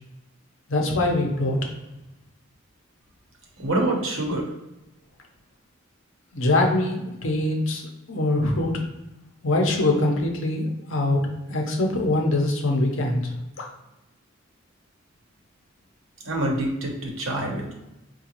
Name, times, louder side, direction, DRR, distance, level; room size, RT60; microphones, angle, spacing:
voice 1, 0.7-1.6 6.3-7.8 8.1-8.8 9.4-11.2 11.5-13.3 13.6-13.7, left 2 dB, 65° left, 2 dB, 0.7 m, -23 dB
voice 2, 3.6-4.5 16.2-17.7, right 1 dB, 75° right, 0 dB, 0.9 m, -26 dB
4.8 x 2.3 x 2.9 m, 0.96 s
head